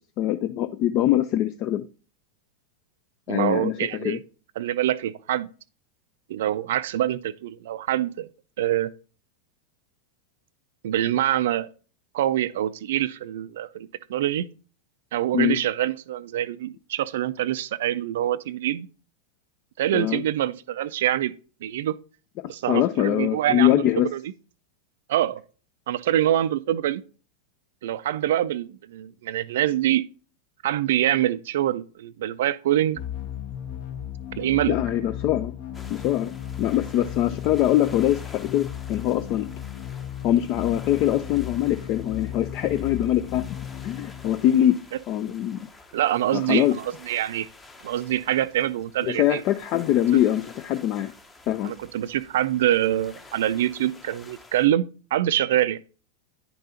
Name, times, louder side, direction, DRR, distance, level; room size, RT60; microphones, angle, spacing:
voice 1, 0.2-1.9 3.3-4.2 15.3-15.6 19.9-20.2 22.4-24.1 34.7-35.5 35.9-39.5 40.2-43.4 43.8-44.8 45.1-45.6 46.3-46.8 49.1-51.1 51.5-51.7, left 12 dB, 40° left, 0.3 m, -23 dB
voice 2, 3.3-4.2 4.6-5.5 6.3-8.3 8.6-8.9 10.8-11.7 12.1-14.5 15.1-18.9 19.8-21.3 21.6-21.9 22.4-24.2 25.1-25.4 25.9-27.0 27.8-30.0 30.6-33.0 34.4-34.7 45.9-47.5 47.8-49.4 51.6-54.8 55.1-55.8, right 12 dB, 55° right, 0.3 m, -25 dB
sound 1, 32.9-44.9, left 10 dB, 55° left, 1.3 m, -35 dB
sound 2, 35.7-54.7, left 3 dB, 15° left, 0.8 m, -49 dB
9.7 x 5.3 x 2.8 m
figure-of-eight pair, 90°, 0 cm